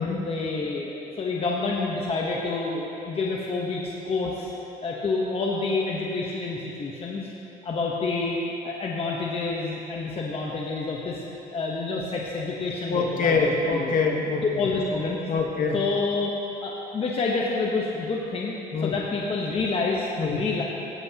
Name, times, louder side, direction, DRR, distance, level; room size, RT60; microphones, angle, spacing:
voice 1, 0.2-4.5 4.8-7.3 7.6-8.4 8.6-11.2 11.5-13.9 14.4-15.2 15.7-16.3 16.6-18.5 18.8-20.6, left 3 dB, 35° left, -3 dB, 1.0 m, -28 dB
voice 2, 12.9-14.7 15.3-15.8 18.7-18.9 20.2-20.4, left 4 dB, 55° left, 1 dB, 1.3 m, -25 dB
17.0 x 7.9 x 2.9 m, 2.9 s
cardioid pair, 110°, 17 cm